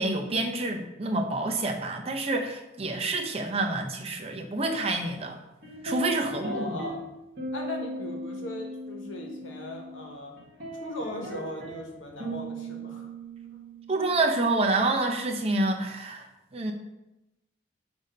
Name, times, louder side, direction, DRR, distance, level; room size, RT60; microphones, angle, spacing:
voice 1, 0.0-5.4 5.8-6.8 13.9-16.3 16.5-16.7, right 2 dB, 30° right, 3 dB, 0.6 m, -28 dB
sound 1, 5.6-7.0 7.4-10.1 10.4-14.7, right 1 dB, 50° right, 1.4 m, -38 dB
voice 2, 6.2-7.0 7.5-10.3 10.8-13.1 13.5-13.6, left 1 dB, 85° left, 1 dB, 1.2 m, -38 dB
6.9 x 2.7 x 5.2 m, 0.94 s
head